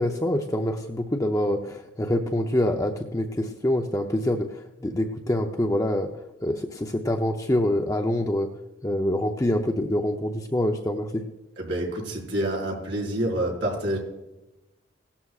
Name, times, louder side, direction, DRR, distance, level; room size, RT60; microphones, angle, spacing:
voice 1, 0.0-8.5 8.8-11.2, left 1 dB, 15° left, 3 dB, 0.6 m, -26 dB
voice 2, 11.6-14.0, right 1 dB, 70° right, -3 dB, 5.0 m, -27 dB
17.5 x 12.5 x 2.4 m, 1.0 s
head